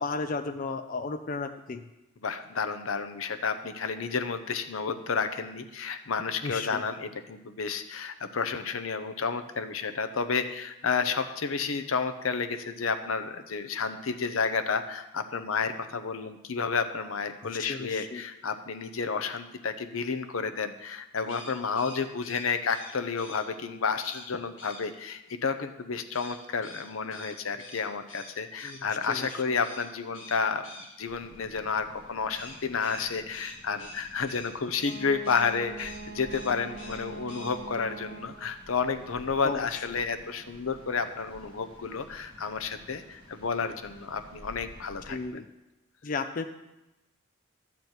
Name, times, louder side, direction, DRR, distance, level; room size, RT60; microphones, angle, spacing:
voice 1, 0.0-1.8 6.4-6.8 17.6-18.2 28.6-28.8 29.1-29.3 39.4-39.7 45.1-45.4 46.0-46.5, left 4 dB, 40° left, 7 dB, 0.5 m, -33 dB
voice 2, 2.2-45.2, left 5 dB, 85° left, 8 dB, 0.8 m, -31 dB
sound 1, 21.2-23.4 24.0-24.3 24.6-24.8 26.1-28.8 29.1-29.3 29.6-29.9 30.1-30.9 32.3-35.0 35.2-35.5 35.8-36.0 36.3-37.0 37.3-37.5, left 2 dB, 65° left, 2.5 m, -46 dB
sound 2, 31.0-45.3, equal, 25° right, 2.0 m, -52 dB
Wind instrument woodwind instrument, 34.8-38.6, right 3 dB, 60° right, 0.8 m, -43 dB
12.0 x 4.5 x 8.1 m, 0.98 s
head